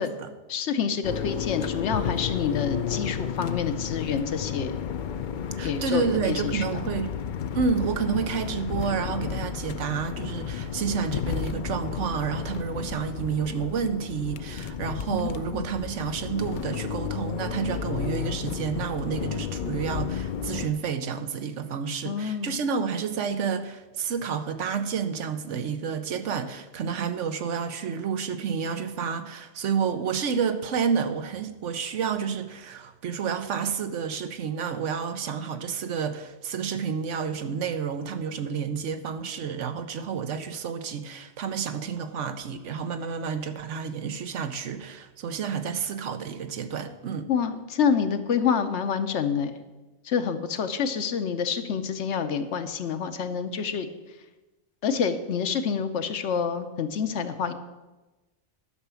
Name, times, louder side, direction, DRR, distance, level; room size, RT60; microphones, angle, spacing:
voice 1, 0.5-4.8 5.6-6.6 15.1-15.7 22.0-22.6 47.3-49.6 50.0-53.9 54.8-57.5, left 6 dB, 75° left, 9 dB, 1.1 m, -27 dB
sound 1, 1.0-20.7, left 8 dB, 55° left, 0.5 m, -32 dB
voice 2, 5.6-7.1 7.5-47.3, right 6 dB, 85° right, 9 dB, 1.2 m, -30 dB
11.0 x 5.9 x 6.9 m, 1.1 s
omnidirectional pair, 1.2 m